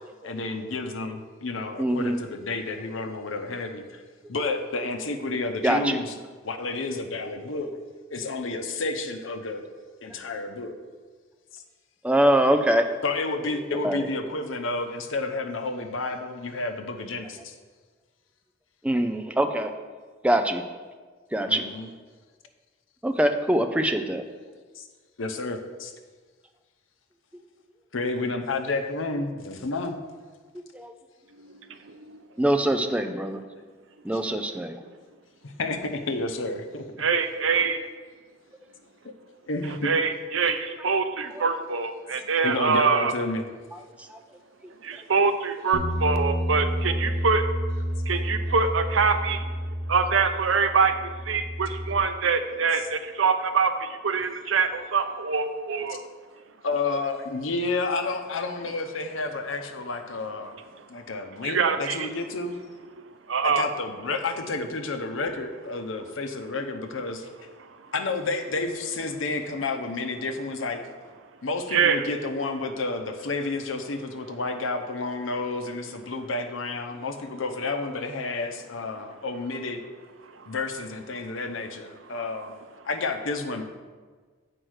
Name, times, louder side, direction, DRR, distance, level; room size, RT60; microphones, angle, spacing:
voice 1, 0.2-4.0 4.3-6.1 6.4-7.7 8.1-9.6 10.0-10.7 11.5-11.6 13.0-17.5 21.5-21.9 24.8-24.9 25.2-25.9 27.9-30.0 35.6-35.8 36.1-36.8 39.0-39.1 39.5-39.9 42.4-43.4 56.6-60.6 60.9-62.6 63.4-67.3 67.9-70.8 71.4-79.8 80.5-82.5 82.8-83.6, left 3 dB, 90° left, 6 dB, 0.8 m, -30 dB
voice 2, 1.8-2.2 5.6-6.0 12.0-12.9 13.8-14.1 18.8-19.7 20.2-20.6 21.3-21.7 23.0-24.2 30.7-30.9 32.4-33.4 34.0-34.8 41.4-41.5 44.0-44.2, right 1 dB, 5° right, 6 dB, 0.4 m, -23 dB
voice 3, 31.3-32.0 37.0-37.8 39.6-43.1 44.8-47.5 48.1-49.5 49.9-56.0 60.5-62.1 63.0-63.6 67.6-67.9 71.7-72.0 80.2-80.5 82.0-82.5 82.8-82.9, right 5 dB, 85° right, 8 dB, 0.6 m, -25 dB
Bass guitar, 45.7-52.0, equal, 70° left, 1.2 m, -30 dB
7.8 x 4.6 x 6.4 m, 1.5 s
head